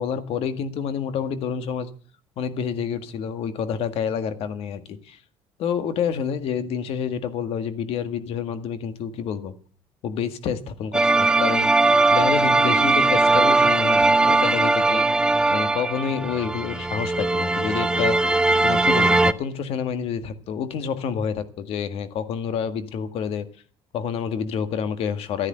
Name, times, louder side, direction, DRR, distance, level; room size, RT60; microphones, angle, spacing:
voice 1, 0.0-1.9 2.4-5.2 5.6-9.5 10.0-11.7 12.1-15.0 15.5-18.2 18.6-23.5 23.9-25.5, left 7 dB, 60° left, 9 dB, 1.8 m, -28 dB
sound 1, 10.9-19.3, right 2 dB, 10° right, 0.6 m, -19 dB
14.0 x 9.7 x 7.9 m, 0.42 s
cardioid pair, 155°, 11 cm